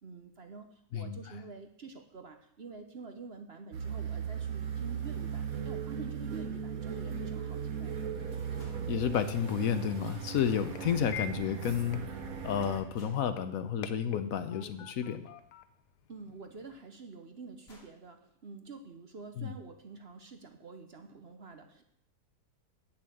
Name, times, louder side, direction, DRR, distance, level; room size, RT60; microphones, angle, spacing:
voice 1, 0.0-8.0 16.1-21.8, right 4 dB, 45° right, 6 dB, 1.0 m, -47 dB
sound 1, 3.7-12.8, right 7 dB, 60° right, 1.6 m, -38 dB
sound 2, 8.6-8.8 10.8-11.1 12.9-13.2 15.5-15.6 16.9-17.0 17.4-17.5 17.7-18.0, left 2 dB, 40° left, 2.6 m, -57 dB
voice 2, 8.9-12.0 12.4-15.3 19.4-19.5, left 8 dB, 65° left, 11 dB, 1.1 m, -31 dB
sound 3, 10.3-16.8, left 7 dB, 85° left, 1.3 m, -48 dB
8.7 x 7.4 x 7.7 m, 0.72 s
omnidirectional pair, 1.7 m